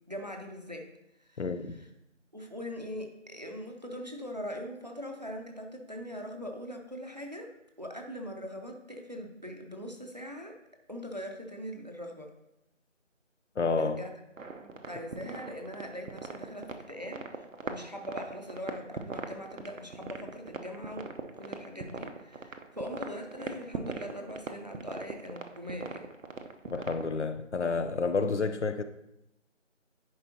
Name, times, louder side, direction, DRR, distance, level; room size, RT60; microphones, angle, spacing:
voice 1, 0.1-0.9 1.2-1.4 1.8-1.9 2.3-7.5 7.8-10.6 10.9-12.3 13.8-14.1 14.6-26.1, equal, 35° right, 0.6 m, -41 dB
voice 2, 1.4-1.8 13.6-14.0 26.7-28.8, left 4 dB, 65° left, 0.6 m, -30 dB
sound 1, 14.4-27.2, right 4 dB, 90° right, 0.8 m, -40 dB
10.5 x 4.7 x 2.8 m
figure-of-eight pair, 170°, 38 cm